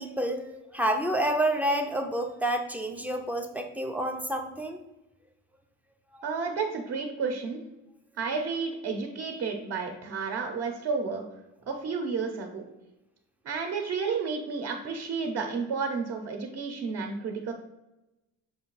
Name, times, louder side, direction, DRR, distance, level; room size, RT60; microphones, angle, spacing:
voice 1, 0.0-4.8 6.1-6.2, right 1 dB, 5° right, 4 dB, 0.4 m, -29 dB
voice 2, 6.2-7.6 8.2-11.2 11.7-12.6 13.4-17.5, right 5 dB, 50° right, 2 dB, 0.8 m, -31 dB
6.6 x 2.6 x 5.4 m, 0.96 s
cardioid pair, 165°, 31 cm